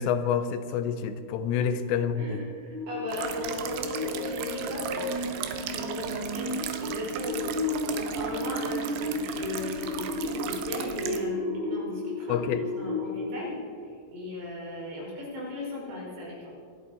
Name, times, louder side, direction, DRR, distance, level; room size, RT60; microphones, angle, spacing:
voice 1, 0.0-2.4 12.3-12.6, left 7 dB, 85° left, 10 dB, 3.4 m, -28 dB
voice 2, 2.2-7.5 7.8-13.6 14.1-16.4, left 1 dB, 60° right, -5 dB, 7.6 m, -36 dB
sound 1, 2.7-13.4, left 1 dB, 25° left, 5.2 m, -33 dB
sound 2, 3.1-11.2, right 8 dB, 75° right, 3.2 m, -37 dB
27.0 x 11.5 x 4.1 m, 2.2 s
omnidirectional pair, 5.7 m